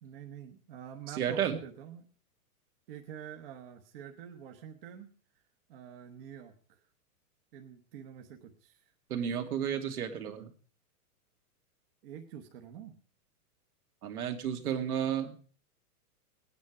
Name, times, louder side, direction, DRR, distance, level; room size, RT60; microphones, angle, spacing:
voice 1, 0.0-2.1 2.9-5.1 5.7-6.8 7.5-8.8 12.0-12.9, right 9 dB, 35° right, 3 dB, 1.2 m, -47 dB
voice 2, 1.1-1.6 9.1-10.5 14.0-15.4, right 9 dB, 70° right, 6 dB, 2.5 m, -32 dB
19.0 x 9.5 x 4.9 m, 0.44 s
hypercardioid pair, 165°, 46 cm